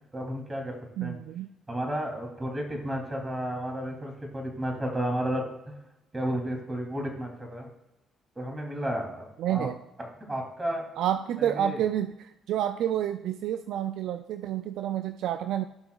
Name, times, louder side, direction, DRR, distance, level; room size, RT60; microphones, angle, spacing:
voice 1, 0.1-0.7 1.0-1.1 1.7-5.7 6.1-7.7 8.3-9.7 10.3-10.9 11.4-11.8, equal, 25° right, 1 dB, 3.0 m, -32 dB
voice 2, 1.0-1.5 9.4-9.8 11.0-15.7, right 10 dB, 70° right, 10 dB, 0.3 m, -29 dB
15.5 x 5.7 x 2.4 m, 0.92 s
hypercardioid pair, 50°, 0 cm